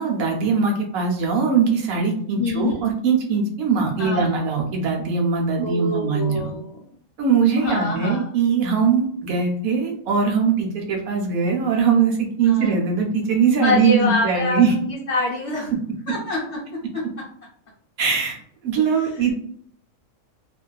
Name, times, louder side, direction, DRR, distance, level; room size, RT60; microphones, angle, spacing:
voice 1, 0.0-6.5 7.2-14.7 18.0-18.4 18.6-19.4, right 5 dB, 80° right, 1 dB, 1.0 m, -21 dB
voice 2, 2.4-2.9 4.0-4.3 5.6-6.8 7.5-8.3 12.4-12.7 13.6-15.7 16.1-17.0 19.0-19.3, left 2 dB, 60° left, -7 dB, 0.8 m, -26 dB
2.5 x 2.2 x 2.2 m, 0.63 s
omnidirectional pair, 1.5 m